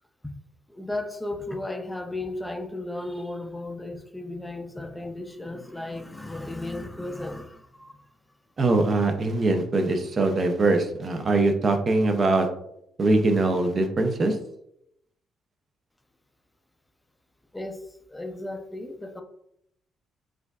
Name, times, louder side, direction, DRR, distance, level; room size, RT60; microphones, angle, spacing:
voice 1, 0.7-8.0 17.5-17.8 18.1-19.2, left 2 dB, 10° left, 5 dB, 0.5 m, -35 dB
voice 2, 8.6-12.5 13.0-14.4, right 2 dB, 40° right, 5 dB, 0.5 m, -22 dB
4.8 x 2.4 x 2.3 m, 0.77 s
cardioid pair, 90°, 0 cm